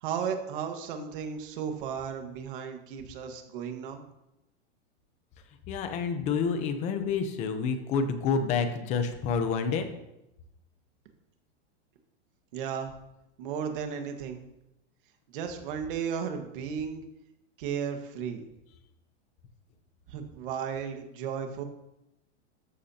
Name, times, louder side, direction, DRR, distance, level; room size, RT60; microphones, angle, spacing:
voice 1, 0.0-4.0 12.5-12.9 13.4-14.4 15.3-17.0 17.6-18.4 20.1-21.6, right 7 dB, 50° right, 5 dB, 1.7 m, -34 dB
voice 2, 5.7-9.9, left 5 dB, 20° left, 8 dB, 0.8 m, -28 dB
13.0 x 12.0 x 2.9 m, 0.90 s
supercardioid pair, 170°, 35 cm